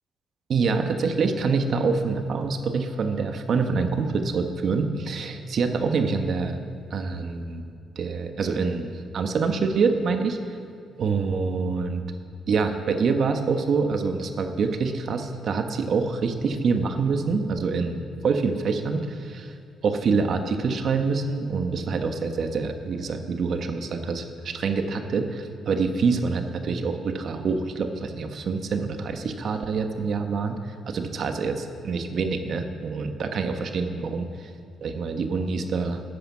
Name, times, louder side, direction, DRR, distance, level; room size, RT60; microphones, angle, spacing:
voice 1, 0.5-6.6 6.9-7.6 8.0-10.4 11.0-12.0 12.5-19.5 19.8-34.5 34.8-36.0, right 4 dB, 60° right, 6 dB, 1.2 m, -26 dB
12.5 x 10.0 x 7.3 m, 2.4 s
cardioid pair, 90°, 0 cm